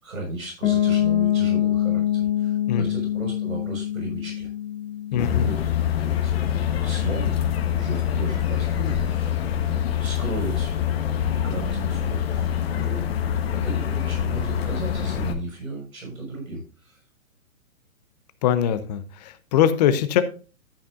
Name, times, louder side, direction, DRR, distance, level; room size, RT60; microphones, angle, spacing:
voice 1, 0.0-4.5 5.1-5.7 6.0-7.4 7.6-17.0, right 2 dB, 70° right, 0 dB, 6.1 m, -35 dB
Piano, 0.6-6.3, left 11 dB, 15° left, 1.2 m, -25 dB
voice 2, 5.1-5.6 18.4-20.2, left 9 dB, 30° left, 13 dB, 0.9 m, -22 dB
sound 1, 5.2-15.3, left 10 dB, 45° left, 1.4 m, -25 dB
13.0 x 8.5 x 2.5 m, 0.36 s
figure-of-eight pair, 120°, 41 cm